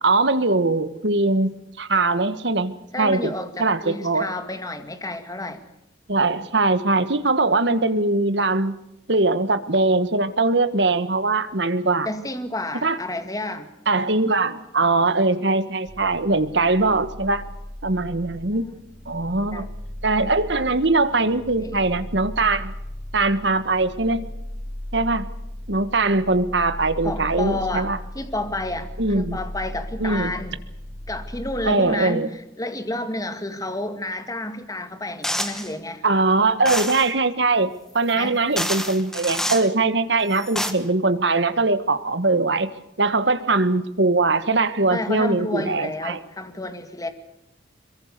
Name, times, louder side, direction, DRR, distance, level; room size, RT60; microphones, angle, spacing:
voice 1, 0.0-1.5 1.8-2.7 3.0-3.3 3.6-4.3 6.1-8.7 9.1-12.1 12.8-13.0 13.9-17.4 17.8-18.7 19.1-19.6 20.0-22.7 23.1-24.2 24.9-25.2 25.7-28.0 29.0-29.4 30.0-30.3 31.6-32.3 36.0-42.7 43.0-46.2, right 3 dB, 60° right, 12 dB, 1.6 m, -21 dB
voice 2, 2.9-5.6 12.1-13.7 19.5-19.7 21.6-21.8 27.0-27.9 28.1-30.6 31.1-36.0 38.1-38.4 44.9-47.1, left 2 dB, 20° left, 9 dB, 2.0 m, -30 dB
sound 1, 15.9-31.7, left 1 dB, 45° left, 3.1 m, -37 dB
sound 2, 35.2-35.7 36.6-37.1 38.1-38.2 38.6-39.7 40.3-40.7, equal, 5° left, 1.7 m, -27 dB
23.0 x 22.5 x 6.8 m, 0.86 s
head